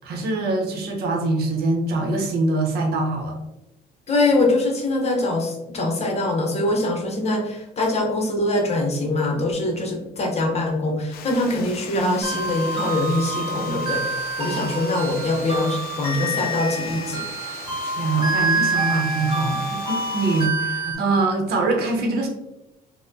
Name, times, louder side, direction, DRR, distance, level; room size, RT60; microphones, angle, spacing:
voice 1, 0.0-3.3 17.8-19.8 20.1-22.3, right 2 dB, 70° right, 2 dB, 0.7 m, -23 dB
voice 2, 4.1-17.3, left 2 dB, 40° left, 1 dB, 0.8 m, -23 dB
Water, 11.1-20.5, left 7 dB, 65° left, 0.4 m, -39 dB
sound 1, 12.2-21.0, right 2 dB, 25° right, 1.1 m, -27 dB
4.1 x 2.1 x 2.6 m, 0.93 s
cardioid pair, 110°, 17 cm